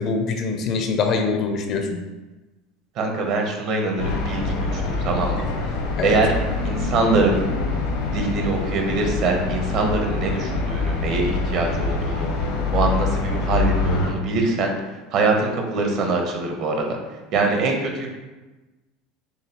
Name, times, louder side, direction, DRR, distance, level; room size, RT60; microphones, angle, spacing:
voice 1, 0.0-2.0 6.0-6.2, left 4 dB, 40° left, 4 dB, 0.4 m, -24 dB
voice 2, 3.0-5.5 6.0-6.3 6.6-7.4 8.1-12.3 12.7-14.7 15.1-17.0 17.3-18.1, right 3 dB, 45° right, 2 dB, 0.8 m, -23 dB
sound 1, 4.0-14.1, left 3 dB, 80° left, 0.8 m, -25 dB
6.6 x 2.3 x 2.9 m, 1.1 s
cardioid pair, 160°, 0 cm